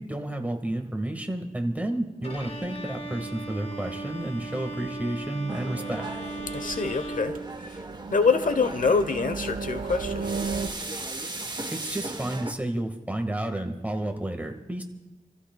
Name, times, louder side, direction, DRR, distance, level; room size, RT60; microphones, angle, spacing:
voice 1, 0.0-6.1 11.7-14.8, right 1 dB, 10° right, 4 dB, 1.8 m, -31 dB
Bowed string instrument, 2.2-8.2, right 2 dB, 50° left, 1.8 m, -38 dB
sound 1, 2.2-10.7, right 5 dB, 85° right, 1.5 m, -37 dB
sound 2, 5.5-12.5, right 2 dB, 30° right, 1.2 m, -38 dB
voice 2, 6.5-7.8 8.1-10.3, left 4 dB, 75° left, 9 dB, 1.0 m, -25 dB
28.0 x 14.5 x 2.4 m, 1.0 s
wide cardioid pair, 75°, 14 cm